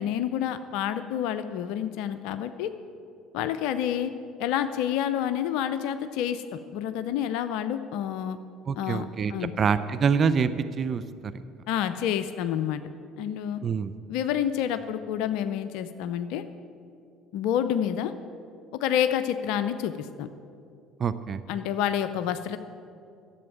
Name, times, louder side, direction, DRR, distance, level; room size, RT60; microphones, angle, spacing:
voice 1, 0.0-2.7 3.3-4.1 4.4-8.4 8.8-9.5 11.7-12.8 13.2-13.6 14.1-16.4 17.3-18.1 18.8-20.3 21.5-22.6, left 10 dB, 70° left, 11 dB, 0.5 m, -28 dB
voice 2, 8.7-11.4 13.6-13.9 21.0-21.4, right 6 dB, 45° right, 12 dB, 0.5 m, -26 dB
11.0 x 7.9 x 9.0 m, 2.4 s
hypercardioid pair, 65°, 0 cm